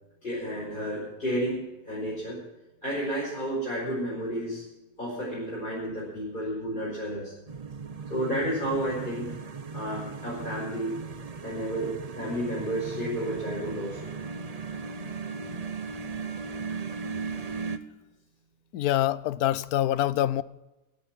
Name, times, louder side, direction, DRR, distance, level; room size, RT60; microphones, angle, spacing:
voice 1, 0.2-2.4 2.8-4.6 5.0-7.3 8.1-9.3 9.7-10.9 11.4-14.1, equal, 30° left, 5.7 m, -31 dB
sound 1, 7.5-17.8, right 5 dB, 35° right, 0.6 m, -37 dB
voice 2, 18.7-20.4, left 12 dB, 80° left, 1.1 m, -25 dB
16.5 x 9.4 x 7.4 m
omnidirectional pair, 1.6 m